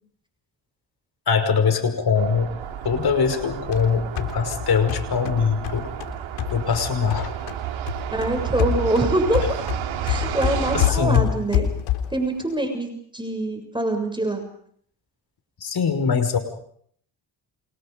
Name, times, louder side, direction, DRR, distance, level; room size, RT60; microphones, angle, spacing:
voice 1, 1.3-2.5 2.8-5.9 6.5-7.3 10.7-11.3 15.6-16.4, left 6 dB, 50° left, 8 dB, 5.7 m, -22 dB
sound 1, 2.1-10.9, right 10 dB, 80° right, 4.0 m, -31 dB
sound 2, 3.3-7.6 7.9-12.2, left 11 dB, 90° left, 3.7 m, -27 dB
voice 2, 8.1-9.5 10.0-11.7 12.1-14.5, right 2 dB, 10° right, 5 dB, 7.4 m, -24 dB
29.5 x 28.0 x 5.3 m, 0.63 s
supercardioid pair, 70°, 46 cm